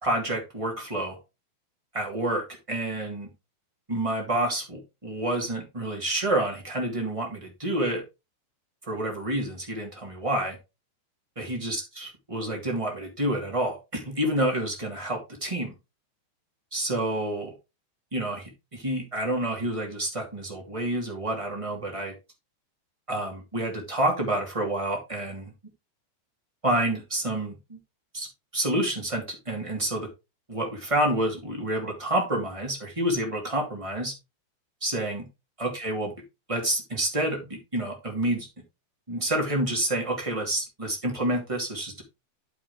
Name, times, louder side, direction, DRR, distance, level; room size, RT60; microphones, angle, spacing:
voice 1, 0.0-1.2 1.9-3.3 3.9-8.0 8.8-10.6 11.3-15.7 16.7-17.5 18.1-22.1 23.1-25.5 26.6-27.8 28.1-28.3 28.5-30.1 30.5-34.1 34.8-35.2 35.6-36.1 36.5-38.5 39.1-42.0, right 1 dB, 15° right, 0 dB, 1.1 m, -28 dB
9.1 x 7.1 x 3.7 m, 0.25 s
omnidirectional pair, 5.4 m